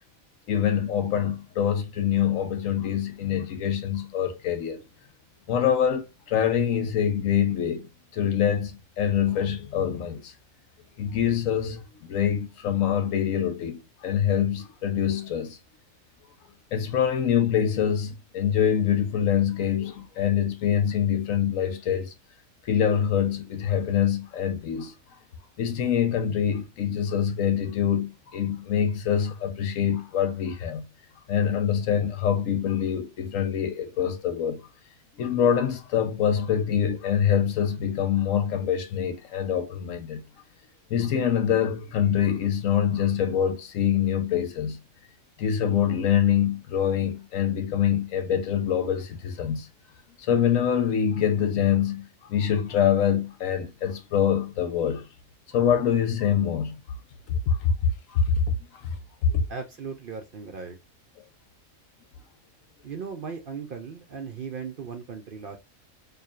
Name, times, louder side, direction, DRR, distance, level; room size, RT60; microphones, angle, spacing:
voice 1, 0.5-4.8 5.5-10.3 11.0-15.6 16.7-22.1 22.6-24.9 25.6-30.9 31.3-34.7 35.2-40.2 40.9-44.8 45.4-49.7 50.2-55.1 55.5-56.8 57.3-58.2 58.7-59.0 59.2-59.4, left 8 dB, 80° left, 1.1 m, -25 dB
voice 2, 59.5-60.8 62.8-65.6, right 5 dB, 60° right, 0.6 m, -37 dB
4.6 x 2.7 x 2.4 m
omnidirectional pair, 1.4 m